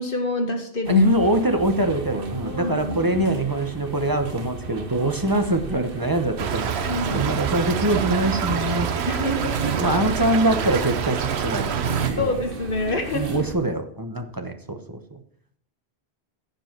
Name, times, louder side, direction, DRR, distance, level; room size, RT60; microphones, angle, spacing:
voice 1, 0.0-1.1 2.4-3.3 6.9-7.3 9.1-10.0 12.2-13.3, left 2 dB, 55° left, 4 dB, 2.0 m, -26 dB
sound 1, 0.8-13.5, right 4 dB, 60° right, 1.4 m, -34 dB
voice 2, 0.9-8.9 9.8-12.3 13.1-15.2, right 1 dB, 20° right, 6 dB, 1.0 m, -24 dB
Stream / Trickle dribble, 6.4-12.1, right 7 dB, 90° right, 1.1 m, -27 dB
15.0 x 5.2 x 6.0 m, 0.66 s
omnidirectional pair, 1.1 m